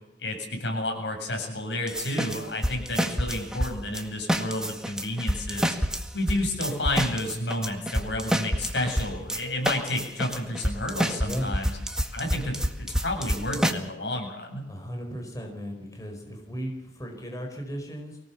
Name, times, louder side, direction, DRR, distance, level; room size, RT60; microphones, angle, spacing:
voice 1, 0.2-5.7 6.1-11.8 12.1-14.7, left 1 dB, 75° left, 3 dB, 7.9 m, -31 dB
sound 1, 1.9-4.0 4.3-13.7, equal, 5° right, 1.8 m, -27 dB
voice 2, 11.2-11.6 14.7-18.2, equal, 20° left, 3 dB, 4.7 m, -36 dB
24.5 x 18.0 x 7.1 m, 0.91 s
head